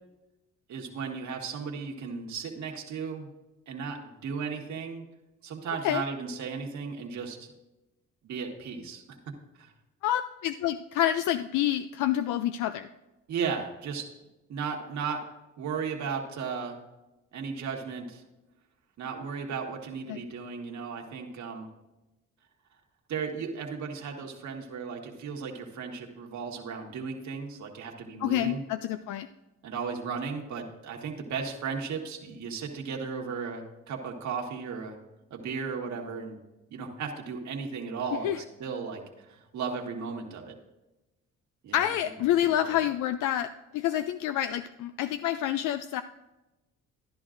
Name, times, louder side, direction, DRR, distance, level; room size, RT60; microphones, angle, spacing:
voice 1, 0.7-3.3 3.7-5.0 5.4-7.5 8.2-9.2 9.6-9.7 13.3-14.0 14.5-15.2 15.6-16.8 17.3-18.2 19.0-21.7 23.1-28.6 29.6-35.0 35.3-36.4 36.7-38.3 38.6-40.6 41.6-41.9 42.6-42.8, right 5 dB, 70° right, 2 dB, 1.7 m, -35 dB
voice 2, 10.0-12.9 20.1-20.3 28.2-29.3 38.2-38.4 41.7-46.0, left 11 dB, 85° left, 10 dB, 0.5 m, -28 dB
13.0 x 11.0 x 2.5 m, 1.0 s
cardioid pair, 90°, 30 cm